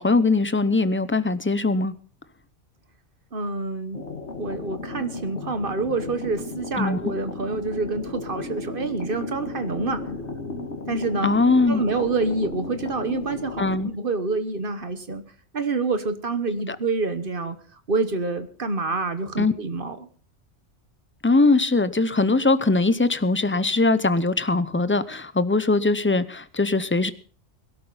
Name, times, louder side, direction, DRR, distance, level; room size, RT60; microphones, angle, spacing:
voice 1, 0.0-2.0 6.8-7.1 11.2-11.8 13.6-13.9 16.7-16.8 19.4-19.5 21.2-27.1, left 3 dB, 15° left, 14 dB, 0.5 m, -21 dB
voice 2, 3.3-4.0 4.4-10.0 10.9-11.3 11.7-15.2 15.5-17.6 17.9-20.1, right 3 dB, 50° right, 11 dB, 1.4 m, -27 dB
sound 1, 3.9-13.9, left 2 dB, 65° left, 2.2 m, -34 dB
22.0 x 12.5 x 4.0 m, 0.40 s
omnidirectional pair, 1.2 m